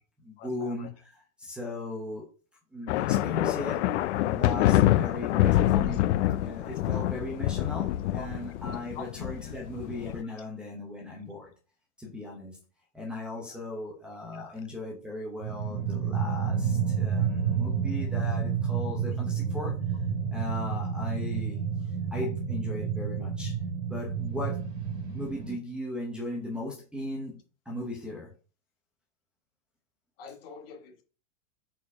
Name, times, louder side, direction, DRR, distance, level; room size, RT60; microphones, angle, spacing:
voice 1, 0.2-2.3 2.7-3.8 4.3-6.1 6.4-11.5 12.0-12.6 12.9-19.8 20.3-21.6 22.1-23.6 23.9-24.6 25.1-28.3, left 2 dB, 5° right, -5 dB, 0.8 m, -37 dB
sound 1, 2.9-10.2, left 14 dB, 65° left, 0.5 m, -26 dB
voice 2, 6.6-7.1 8.1-8.3 8.9-9.1 14.3-14.5 30.2-31.0, left 7 dB, 50° left, 6 dB, 1.4 m, -43 dB
sound 2, 15.4-25.6, right 7 dB, 55° right, 1.7 m, -30 dB
4.8 x 4.3 x 4.7 m, 0.37 s
supercardioid pair, 170°, 37 cm